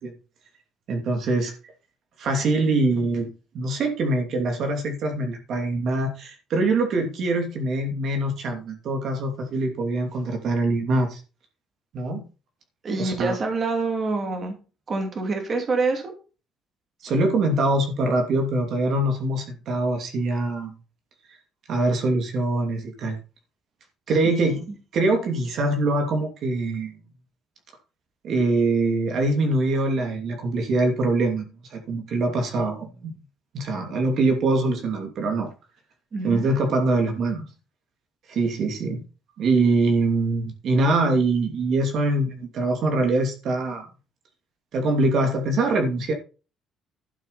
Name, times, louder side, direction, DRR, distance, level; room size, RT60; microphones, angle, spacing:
voice 1, 0.9-1.5 2.2-11.2 11.9-12.2 13.0-13.3 17.0-20.7 21.7-23.2 24.1-24.6 24.9-26.9 28.2-33.1 33.5-35.5 36.2-37.4 38.3-39.0 39.4-43.9 44.7-46.1, right 2 dB, 45° right, 3 dB, 2.7 m, -23 dB
voice 2, 12.8-14.6 14.9-16.1 24.2-24.6 36.1-36.5, right 3 dB, 30° right, 3 dB, 2.6 m, -26 dB
12.0 x 8.8 x 4.1 m, 0.34 s
cardioid pair, 175°, 0 cm